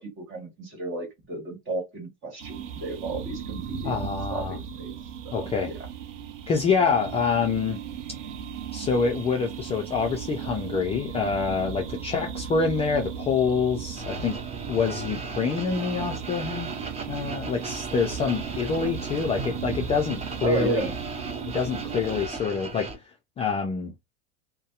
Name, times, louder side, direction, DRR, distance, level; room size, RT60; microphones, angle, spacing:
voice 1, 0.0-4.9 5.2-5.9 6.8-6.9 20.4-20.9, right 3 dB, 35° right, 1.4 m, -33 dB
sound 1, 2.4-22.3, right 8 dB, 80° right, 0.6 m, -36 dB
voice 2, 3.8-4.6 5.3-5.7 6.5-7.8 8.7-14.4 14.7-16.7 17.1-20.9 21.5-22.9 23.4-23.9, left 5 dB, 20° left, 0.3 m, -26 dB
sound 2, 14.0-22.9, right 3 dB, 20° right, 0.7 m, -37 dB
2.6 x 2.1 x 2.4 m
hypercardioid pair, 95°, 36 cm